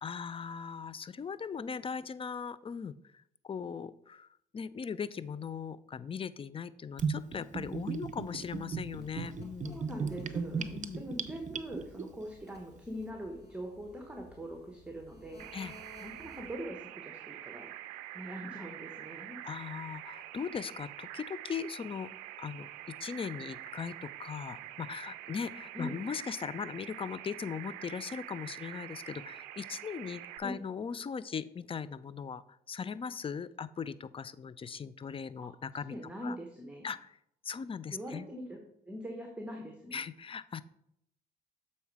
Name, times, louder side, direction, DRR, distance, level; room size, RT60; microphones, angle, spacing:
voice 1, 0.0-3.0 3.4-4.3 4.5-9.8 10.6-11.0 15.5-15.7 19.4-22.1 22.4-32.4 32.7-35.9 36.2-36.4 36.8-37.2 37.4-38.3 39.9-40.6, left 6 dB, 25° left, 17 dB, 0.4 m, -39 dB
Gurgling / Bathtub (filling or washing), 7.0-12.0, right 5 dB, 40° right, 0.7 m, -36 dB
sound 1, 8.3-16.7, left 1 dB, 55° left, 1.9 m, -56 dB
voice 2, 9.7-10.7 10.9-15.5 16.0-17.7 18.1-19.4 25.7-26.0 30.4-30.6 35.4-35.5 35.9-36.9 37.9-38.6 38.8-40.0, equal, 5° right, 2 dB, 1.2 m, -42 dB
sound 2, 15.4-30.4, right 14 dB, 90° right, 0.4 m, -46 dB
7.0 x 4.1 x 4.8 m, 0.74 s
hypercardioid pair, 55°, 20 cm